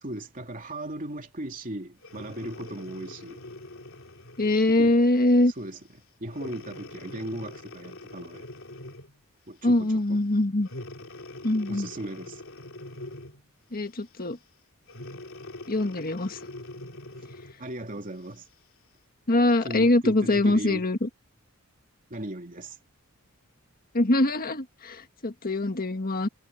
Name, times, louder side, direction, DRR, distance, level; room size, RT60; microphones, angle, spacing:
voice 1, 0.0-3.4 4.7-4.9 5.6-5.8 6.2-8.5 9.5-10.2 11.7-12.4 17.6-18.4 19.6-20.8 22.1-22.8, right 1 dB, 40° right, 3.1 m, -37 dB
Breathing, 2.0-4.6 5.3-5.5 6.3-9.2 10.6-13.5 14.9-17.6 18.2-18.3, left 2 dB, 65° left, 3.5 m, -43 dB
voice 2, 4.4-5.5 9.6-10.7 11.4-11.9 13.7-14.4 15.7-16.4 19.3-21.1 23.9-26.3, left 2 dB, 45° left, 1.6 m, -23 dB
head